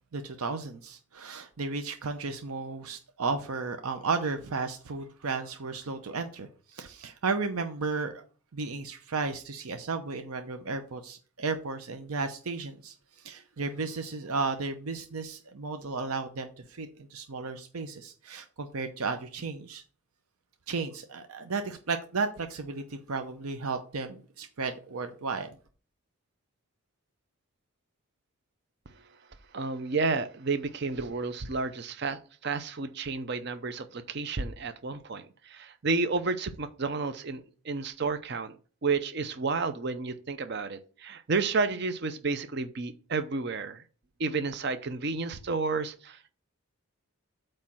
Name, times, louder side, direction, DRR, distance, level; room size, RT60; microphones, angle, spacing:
voice 1, 0.1-8.2 8.5-12.9 13.2-19.8 20.7-25.6, right 4 dB, 80° right, 0.7 m, -34 dB
voice 2, 29.5-38.5 38.8-43.8 44.2-46.3, right 4 dB, 50° right, 0.6 m, -31 dB
8.4 x 3.2 x 6.1 m
head